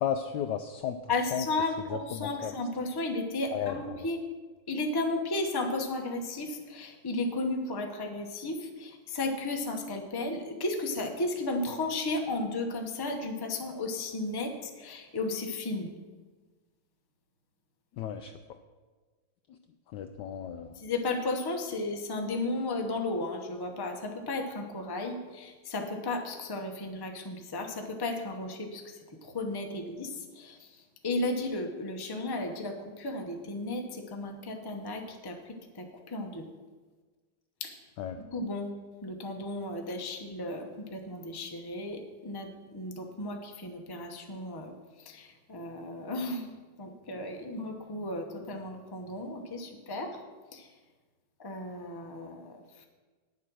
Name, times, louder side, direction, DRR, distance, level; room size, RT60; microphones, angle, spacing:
voice 1, 0.0-1.0 1.3-1.5 1.9-2.5 3.5-4.0 18.0-18.3 19.9-20.8 38.0-38.2, left 9 dB, 75° left, 7 dB, 1.1 m, -34 dB
voice 2, 1.1-4.2 4.7-15.9 20.7-36.5 37.6-37.7 38.2-38.7 39.0-50.1 50.5-50.7 51.4-52.9, left 2 dB, 25° left, 3 dB, 0.5 m, -34 dB
9.5 x 7.4 x 6.2 m, 1.4 s
omnidirectional pair, 2.2 m